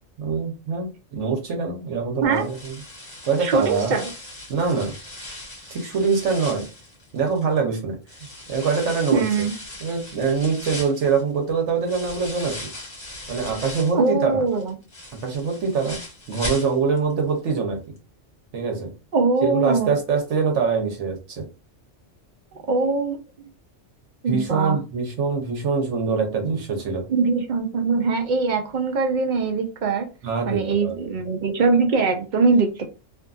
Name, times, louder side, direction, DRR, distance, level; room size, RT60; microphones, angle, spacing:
voice 1, 0.2-2.8 3.2-4.0 4.5-5.0 5.7-6.7 7.1-8.0 8.5-9.2 9.8-12.7 13.3-14.4 15.2-16.0 16.3-17.8 18.5-18.9 19.4-21.5 24.3-27.0 30.2-31.0, right 5 dB, 70° right, 1.2 m, -24 dB
sound 1, 2.3-7.6 8.1-14.1 14.5-17.1 17.4-17.5 18.0-18.1, left 1 dB, 35° left, 1.2 m, -38 dB
voice 2, 3.4-4.1 9.1-9.5 13.9-14.7 19.1-19.9 22.7-23.2 24.2-24.8 27.1-30.1 30.5-32.8, right 4 dB, 55° right, 0.5 m, -22 dB
2.6 x 2.5 x 2.4 m
omnidirectional pair, 1.3 m